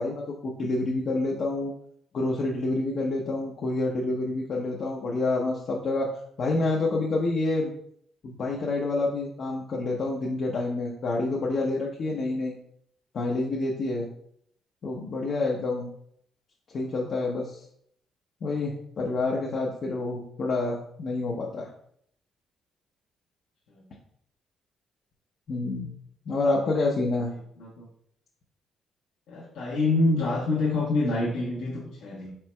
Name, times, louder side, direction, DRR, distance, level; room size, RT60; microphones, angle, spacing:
voice 1, 0.0-1.7 2.1-6.1 6.4-7.7 8.2-12.6 13.1-14.1 14.8-15.9 16.7-17.6 18.4-21.7 25.5-25.9 26.3-27.3, left 2 dB, 55° left, -2 dB, 0.7 m, -28 dB
voice 2, 29.3-32.3, left 2 dB, 85° left, -6 dB, 1.1 m, -26 dB
4.5 x 4.2 x 2.2 m, 0.68 s
cardioid pair, 90°, 0 cm